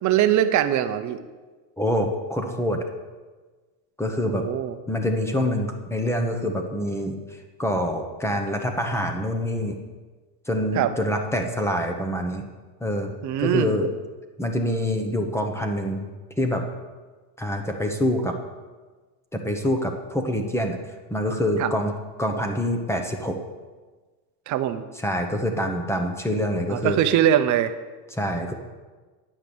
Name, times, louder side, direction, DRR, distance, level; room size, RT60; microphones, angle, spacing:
voice 1, 0.0-1.2 4.2-4.8 10.7-10.9 13.2-13.7 21.6-21.7 24.5-24.8 26.7-27.7, right 11 dB, 40° right, 10 dB, 0.8 m, -22 dB
voice 2, 1.8-2.8 4.0-4.5 4.9-7.2 7.6-9.8 10.5-12.4 12.8-13.1 13.4-13.9 14.4-16.1 16.4-16.6 17.4-18.3 19.3-20.8 21.1-23.4 25.0-27.0 28.1-28.5, equal, 5° left, 4 dB, 1.0 m, -25 dB
9.8 x 5.8 x 6.9 m, 1.3 s
supercardioid pair, 120°, 46 cm